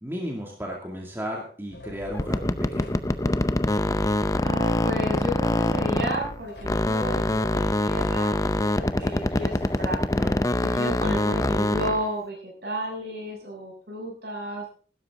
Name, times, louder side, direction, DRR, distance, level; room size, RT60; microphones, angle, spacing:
voice 1, 0.0-3.0 10.2-10.4, equal, 15° right, -1 dB, 2.3 m, -34 dB
sound 1, 1.7-10.0, left 1 dB, 85° left, 4.0 m, -43 dB
sound 2, 2.1-6.4 6.6-12.1, left 1 dB, 20° left, 0.6 m, -24 dB
voice 2, 4.4-8.3 8.6-10.0 10.6-14.6, equal, 60° right, 0 dB, 6.7 m, -32 dB
15.5 x 12.5 x 3.7 m, 0.42 s
head